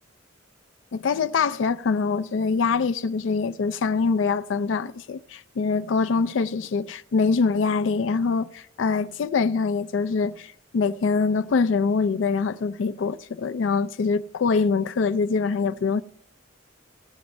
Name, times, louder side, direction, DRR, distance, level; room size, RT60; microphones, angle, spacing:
voice 1, 0.9-16.0, left 4 dB, 65° left, 0.4 m, -24 dB
18.0 x 7.9 x 5.2 m
head